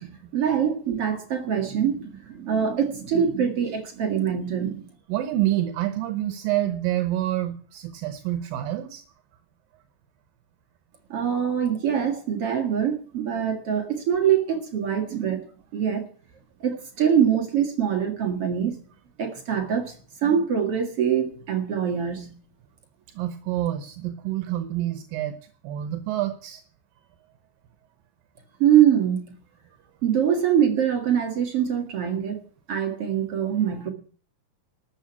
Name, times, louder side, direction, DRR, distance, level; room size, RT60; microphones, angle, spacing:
voice 1, 0.3-4.9 11.1-16.0 16.6-18.7 19.2-19.9 20.2-22.3 28.6-29.3 30.0-32.4 32.7-33.9, right 8 dB, 45° right, 2.4 m, -24 dB
voice 2, 5.1-9.0 23.1-25.4 25.6-26.6, right 13 dB, 75° right, 2.7 m, -27 dB
13.0 x 7.4 x 9.7 m
omnidirectional pair, 4.2 m